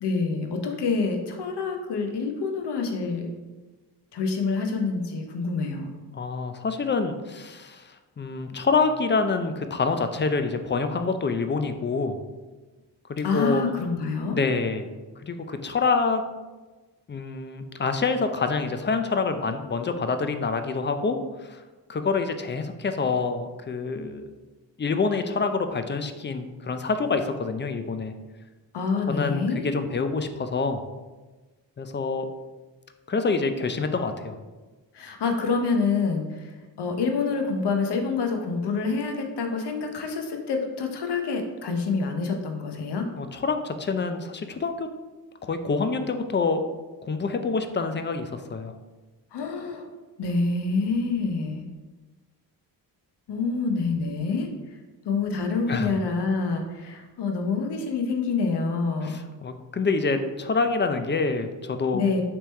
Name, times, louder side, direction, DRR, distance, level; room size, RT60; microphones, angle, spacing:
voice 1, 0.0-3.3 4.1-5.9 13.2-14.4 28.7-29.7 34.9-43.1 49.3-49.9 50.2-51.6 53.3-54.5 55.0-59.2 61.9-62.2, left 4 dB, 60° left, 4 dB, 0.8 m, -27 dB
voice 2, 6.1-12.2 13.1-13.6 14.3-14.9 15.2-16.2 17.1-21.6 21.9-24.3 24.8-28.1 29.1-30.8 31.8-32.3 33.1-34.4 43.1-44.9 45.4-46.6 47.0-48.7 55.7-55.9 59.0-62.0, left 4 dB, 25° left, 8 dB, 0.4 m, -26 dB
3.4 x 2.9 x 4.2 m, 1.2 s
supercardioid pair, 45°, 46 cm